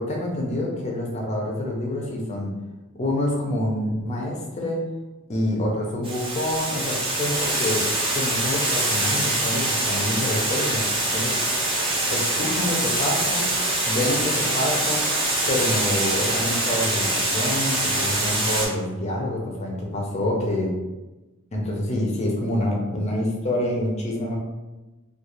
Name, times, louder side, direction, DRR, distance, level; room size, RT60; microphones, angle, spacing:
voice 1, 0.0-2.5 2.9-4.8 5.3-7.9 8.1-10.9 11.1-11.4 12.1-13.5 13.9-15.1 15.5-20.8 21.5-24.4, left 1 dB, 30° left, -1 dB, 0.5 m, -27 dB
Water, 6.0-18.7, right 1 dB, 25° right, 0.5 m, -24 dB
2.4 x 2.3 x 3.0 m, 1.1 s
head